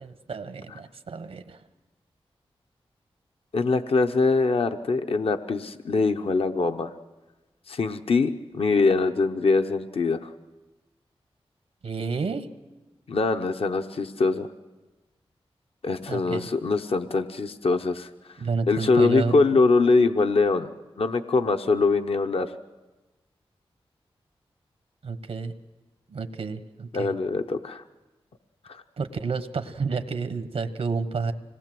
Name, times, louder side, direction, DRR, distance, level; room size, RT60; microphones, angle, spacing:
voice 1, 0.0-1.6 11.8-12.5 16.1-16.5 18.4-19.3 25.0-25.5 26.1-27.1 29.0-31.3, right 4 dB, 90° right, 9 dB, 1.1 m, -30 dB
voice 2, 3.5-6.9 7.7-10.3 13.1-14.5 15.8-18.1 18.7-20.7 21.0-22.5 26.9-27.8 28.7-28.8, left 3 dB, 70° left, 6 dB, 0.8 m, -23 dB
25.5 x 19.0 x 7.7 m, 1.2 s
cardioid pair, 65°, 10 cm